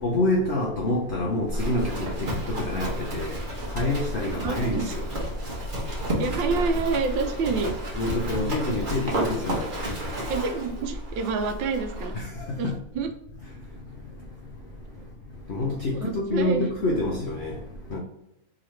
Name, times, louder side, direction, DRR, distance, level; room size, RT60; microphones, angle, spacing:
voice 1, 0.0-3.4 3.7-5.0 8.0-9.7 12.2-12.3 12.6-12.8 15.5-17.6 17.9-18.0, left 2 dB, 85° left, 0.6 m, -27 dB
Livestock farm animals working animals, 1.5-12.3, equal, 35° right, 0.9 m, -31 dB
voice 2, 4.4-4.9 6.2-7.7 10.3-12.1 12.6-13.1 15.9-16.6, right 4 dB, 80° right, 1.4 m, -28 dB
3.8 x 3.0 x 3.1 m
omnidirectional pair, 2.1 m